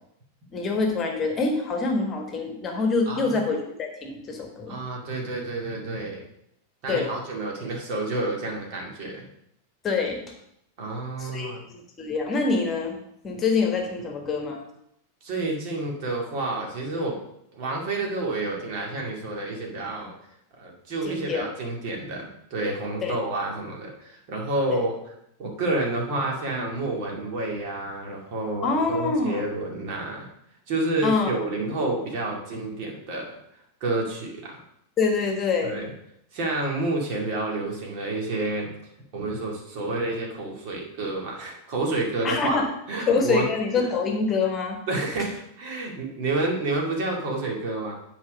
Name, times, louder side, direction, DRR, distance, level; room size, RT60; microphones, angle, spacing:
voice 1, 0.5-4.8 6.9-7.1 9.8-10.2 11.2-13.0 13.2-14.6 21.0-21.5 23.0-23.1 24.7-24.8 28.6-29.5 31.0-31.3 35.0-35.8 42.2-42.7 43.1-44.8, left 4 dB, 25° left, 3 dB, 1.5 m, -25 dB
voice 2, 3.1-3.4 4.7-6.2 6.8-9.3 10.8-11.6 15.2-17.2 17.6-20.1 20.6-24.9 25.4-30.3 30.7-33.3 33.8-34.6 35.6-35.9 36.3-38.7 39.1-42.6 42.9-43.5 44.9-47.9, right 2 dB, 45° right, -1 dB, 2.3 m, -29 dB
9.5 x 4.5 x 5.2 m, 0.76 s
figure-of-eight pair, 90°, 0 cm